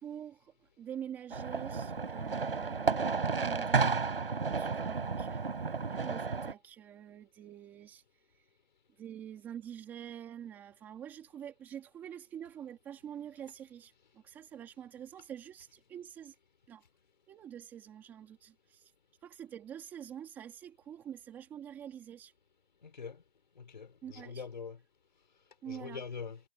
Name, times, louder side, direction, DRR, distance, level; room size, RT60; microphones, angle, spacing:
voice 1, 0.0-3.9 4.4-5.5 5.8-8.0 9.0-16.3 16.7-16.8 17.3-18.9 19.2-22.3 24.0-24.5 25.6-26.0, right 9 dB, 5° right, 2.8 m, -46 dB
sound 1, 1.3-6.5, right 4 dB, 70° right, 6.2 m, -32 dB
voice 2, 22.8-23.2 23.6-24.8 25.7-26.4, left 5 dB, 50° left, 4.9 m, -43 dB
hypercardioid pair, 175°, 30 cm